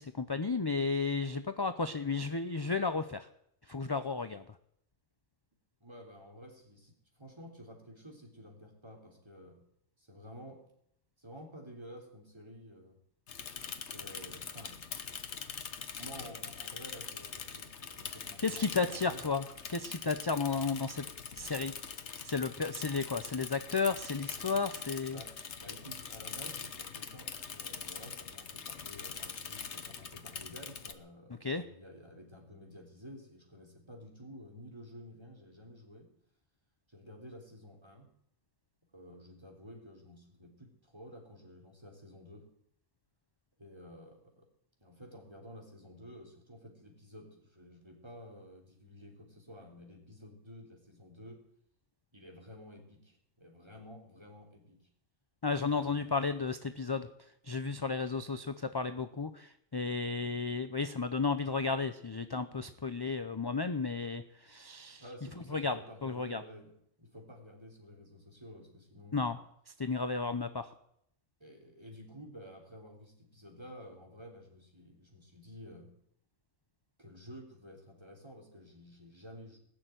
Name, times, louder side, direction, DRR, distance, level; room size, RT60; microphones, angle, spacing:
voice 1, 0.0-3.3 3.7-4.4 18.4-19.4 19.7-21.1 21.4-21.7 22.2-25.2 31.4-31.6 55.4-65.0 65.5-66.4 69.1-69.4 69.8-70.7, left 4 dB, 30° left, 10 dB, 0.5 m, -33 dB
voice 2, 5.8-9.6 10.0-10.6 11.2-13.0 13.8-14.8 16.0-19.2 25.1-36.1 36.9-38.1 38.8-42.5 43.6-44.5 44.8-51.4 52.1-54.9 55.7-56.1 65.0-69.3 71.4-75.9 77.0-79.6, equal, 20° right, 1 dB, 3.5 m, -51 dB
Bicycle / Mechanisms, 13.3-30.9, left 6 dB, 65° left, 1.4 m, -43 dB
20.0 x 6.8 x 9.1 m, 0.73 s
omnidirectional pair, 1.3 m